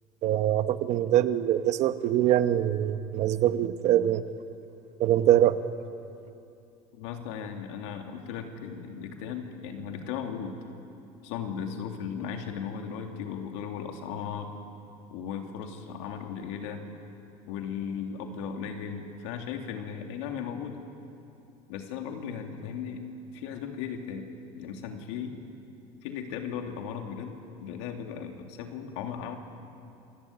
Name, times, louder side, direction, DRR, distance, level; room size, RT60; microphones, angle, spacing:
voice 1, 0.2-4.2 5.0-5.6, right 11 dB, 50° right, 11 dB, 1.1 m, -23 dB
voice 2, 6.9-10.6 11.2-14.5 15.1-16.8 17.5-20.8 21.7-23.0 23.3-24.3 24.5-25.3 26.0-29.4, left 7 dB, 80° left, 4 dB, 2.9 m, -36 dB
27.0 x 18.0 x 8.8 m, 2.6 s
supercardioid pair, 130°, 15 cm